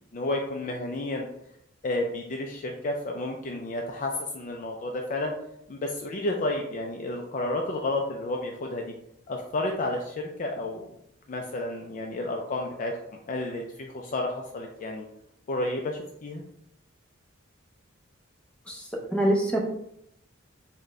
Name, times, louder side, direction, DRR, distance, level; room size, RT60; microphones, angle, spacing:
voice 1, 0.1-1.3 1.8-5.3 5.7-8.9 9.3-10.9 11.3-15.1 15.5-16.4, left 2 dB, 40° left, 1 dB, 0.3 m, -31 dB
voice 2, 18.7-19.6, right 1 dB, 5° left, -1 dB, 0.6 m, -25 dB
3.9 x 2.1 x 3.5 m, 0.77 s
head